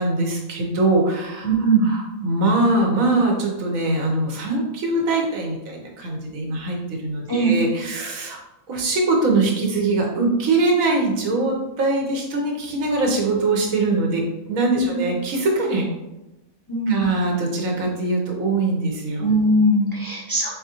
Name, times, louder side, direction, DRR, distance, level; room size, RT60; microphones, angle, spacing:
voice 1, 0.0-8.4 8.7-15.9 16.9-19.3, right 2 dB, 90° right, 0 dB, 1.2 m, -22 dB
voice 2, 1.4-1.9 7.3-7.5 14.7-15.0 16.7-17.0 19.2-20.5, right 2 dB, 35° left, -5 dB, 0.3 m, -20 dB
4.1 x 3.6 x 2.8 m, 0.95 s
omnidirectional pair, 1.4 m